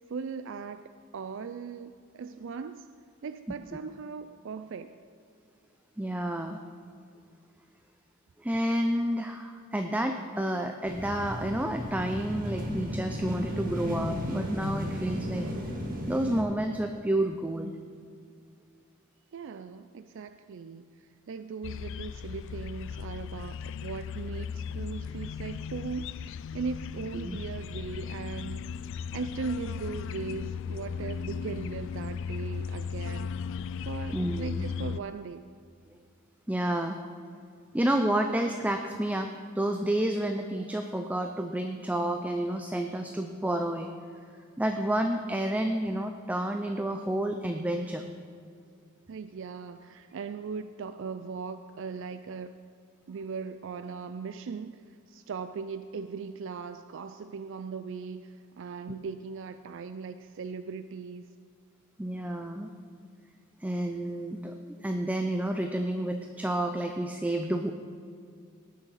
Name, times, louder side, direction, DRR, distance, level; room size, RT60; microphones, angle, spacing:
voice 1, 0.1-2.9 3.2-4.9 19.3-28.7 29.1-33.4 33.9-35.4 49.1-52.6 53.1-61.3, right 5 dB, 60° right, 10 dB, 0.4 m, -39 dB
voice 2, 6.0-6.6 8.4-15.5 16.1-17.7 27.1-27.4 34.1-34.7 36.5-37.0 37.7-43.9 44.6-48.0 62.0-62.7 63.6-67.7, right 1 dB, 5° right, 5 dB, 0.5 m, -30 dB
sound 1, 10.8-16.4, equal, 45° right, 1.8 m, -34 dB
sound 2, 21.6-35.0, left 6 dB, 60° left, 0.3 m, -36 dB
19.0 x 6.5 x 5.6 m, 2.4 s
head